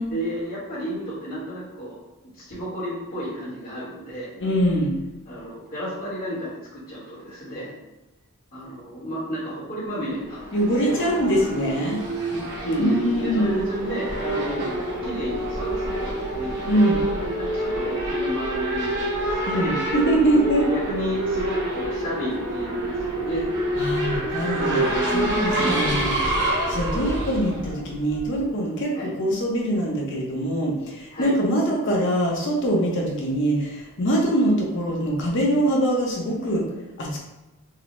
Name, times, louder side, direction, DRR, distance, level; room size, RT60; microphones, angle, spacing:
voice 1, 0.0-2.0 2.3-4.3 5.2-7.7 8.5-10.9 12.3-16.6 17.3-19.7 20.6-23.5 25.6-25.9 28.9-29.1 31.1-31.4, equal, 45° left, -13 dB, 1.3 m, -32 dB
voice 2, 4.4-4.9 10.5-12.0 12.8-13.7 16.7-17.0 19.5-20.7 23.7-36.7 37.0-37.2, right 1 dB, 60° left, -1 dB, 0.8 m, -23 dB
Race car auto racing / Accelerating revving vroom, 10.3-28.4, right 1 dB, 60° right, 1.1 m, -27 dB
3.7 x 2.1 x 3.0 m, 1.0 s
head